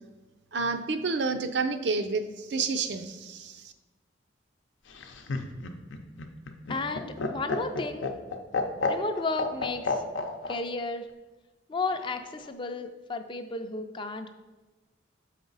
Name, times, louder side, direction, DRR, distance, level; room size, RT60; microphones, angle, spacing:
voice 1, 0.5-3.7, right 4 dB, 65° right, 8 dB, 0.5 m, -29 dB
Laughter, 4.9-10.6 11.9-12.5, left 3 dB, 90° left, 0.7 m, -31 dB
voice 2, 6.7-8.1 8.9-10.0 10.5-11.1 11.7-14.3, left 3 dB, 25° left, 7 dB, 0.4 m, -33 dB
7.4 x 5.0 x 4.0 m, 1.2 s
head